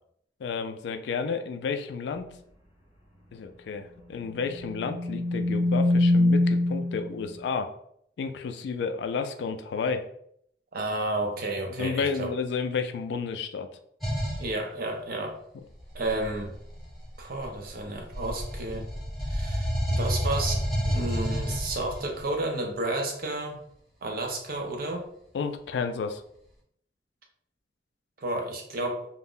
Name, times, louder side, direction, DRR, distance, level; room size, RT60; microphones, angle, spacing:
voice 1, 0.4-2.3 3.3-7.7 8.2-10.1 11.8-13.7 25.3-26.2, left 5 dB, 70° left, 7 dB, 0.3 m, -31 dB
sound 1, 4.6-7.1, left 2 dB, 30° left, 0.7 m, -23 dB
voice 2, 10.7-12.3 14.4-15.4 15.9-16.5 17.2-18.9 19.3-23.6 24.0-25.1 28.2-29.1, right 2 dB, 55° right, 2 dB, 0.6 m, -31 dB
sound 2, 14.0-14.5 15.8-17.7 18.1-22.2, equal, ahead, 0.9 m, -30 dB
2.4 x 2.1 x 3.6 m, 0.69 s
head